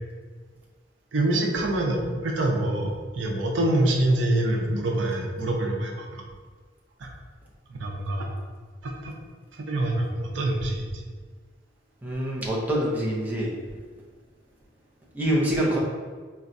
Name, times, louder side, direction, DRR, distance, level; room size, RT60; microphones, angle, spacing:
voice 1, 1.1-6.2 7.0-7.1 7.8-8.3 9.0-9.1 9.7-11.0, right 1 dB, 85° right, 0 dB, 0.5 m, -25 dB
voice 2, 12.0-13.5 15.2-15.8, right 1 dB, 10° right, -5 dB, 0.5 m, -25 dB
4.0 x 2.2 x 2.5 m, 1.5 s
head